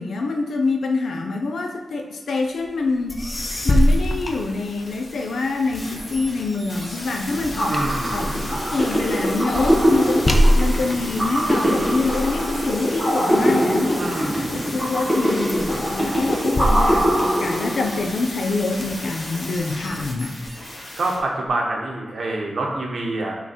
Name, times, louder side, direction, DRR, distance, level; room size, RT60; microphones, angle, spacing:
voice 1, 0.0-3.2 3.6-7.8 8.1-10.2 10.6-14.0 14.5-20.4, left 3 dB, 85° left, 3 dB, 0.7 m, -25 dB
sound 1, 2.8-2.9 3.1-5.2 5.7-14.3 14.8-15.2 15.5-18.0 18.5-19.5, equal, 25° left, 0.5 m, -25 dB
sound 2, 3.3-21.2 21.5-21.6, left 1 dB, 45° left, 1.2 m, -35 dB
sound 3, 7.3-18.1, equal, 5° left, 1.8 m, -23 dB
voice 2, 7.7-8.3 14.0-14.6 21.0-23.4, right 2 dB, 55° right, -1 dB, 1.2 m, -26 dB
5.8 x 3.9 x 4.4 m, 1.3 s
wide cardioid pair, 175°, 0 cm